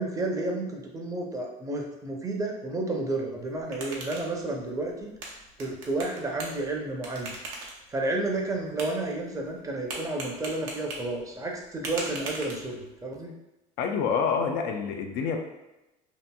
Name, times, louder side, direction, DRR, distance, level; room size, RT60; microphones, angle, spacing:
voice 1, 0.0-5.1 5.6-7.3 7.9-13.3, right 2 dB, 20° right, 0 dB, 0.5 m, -31 dB
sound 1, 3.4-13.0, right 2 dB, 85° right, 0.6 m, -42 dB
voice 2, 13.8-15.4, left 6 dB, 75° left, 4 dB, 0.4 m, -27 dB
2.8 x 2.5 x 2.2 m, 0.98 s
supercardioid pair, 90°, 17 cm